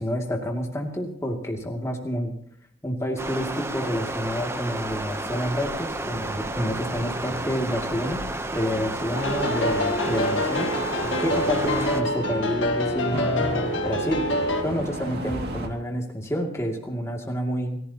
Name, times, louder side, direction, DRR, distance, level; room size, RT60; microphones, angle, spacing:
voice 1, 0.0-2.4 2.8-8.2 8.5-10.7 11.2-14.2 14.6-17.8, equal, 15° left, 1 dB, 2.4 m, -29 dB
Stream, 3.2-12.0, right 2 dB, 15° right, 0.8 m, -32 dB
sound 1, 5.8-15.7, right 1 dB, 55° right, 2.4 m, -37 dB
sound 2, 9.1-14.6, left 1 dB, 65° left, 1.9 m, -26 dB
29.0 x 15.5 x 2.9 m, 0.66 s
head